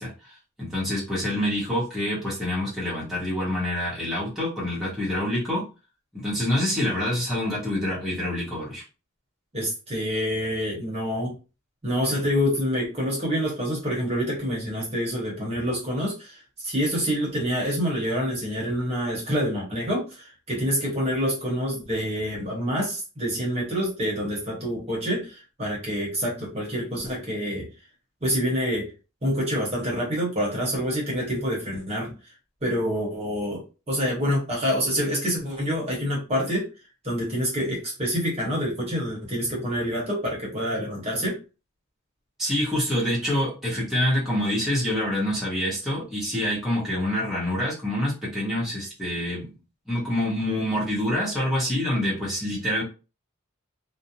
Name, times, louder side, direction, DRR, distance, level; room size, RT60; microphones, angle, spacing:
voice 1, 0.0-5.6 6.1-8.8 42.4-49.5 49.9-52.8, left 1 dB, ahead, -8 dB, 0.9 m, -26 dB
voice 2, 9.5-11.3 11.8-27.7 28.2-28.9 29.2-32.1 32.6-36.7 37.0-41.4, equal, 30° right, -3 dB, 0.9 m, -27 dB
2.5 x 2.0 x 2.8 m, 0.32 s
head